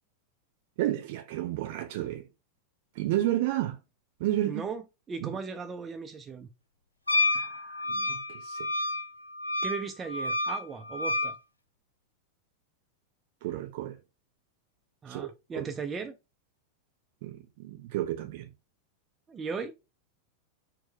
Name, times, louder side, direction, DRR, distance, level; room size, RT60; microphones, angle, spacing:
voice 1, 0.8-2.3 3.0-3.8 4.2-4.6 5.2-5.3 7.3-8.6 13.4-14.0 15.1-15.7 17.2-18.5, right 14 dB, 50° right, 0.7 m, -32 dB
voice 2, 4.4-4.8 5.1-6.5 9.6-11.4 15.0-16.2 19.3-19.7, right 5 dB, 20° right, 0.4 m, -37 dB
Wind instrument woodwind instrument, 7.1-11.4, left 2 dB, 85° left, 0.5 m, -30 dB
4.3 x 2.1 x 4.5 m
figure-of-eight pair, 90°, 0 cm